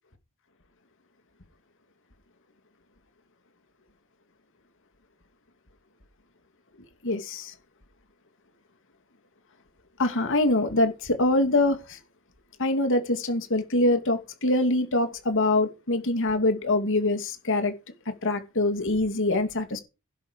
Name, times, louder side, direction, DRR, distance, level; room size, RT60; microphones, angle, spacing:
voice 1, 7.0-7.5 10.0-12.0 12.6-17.7 18.2-19.8, left 2 dB, 60° left, 2.5 m, -24 dB
12.0 x 11.0 x 5.2 m
head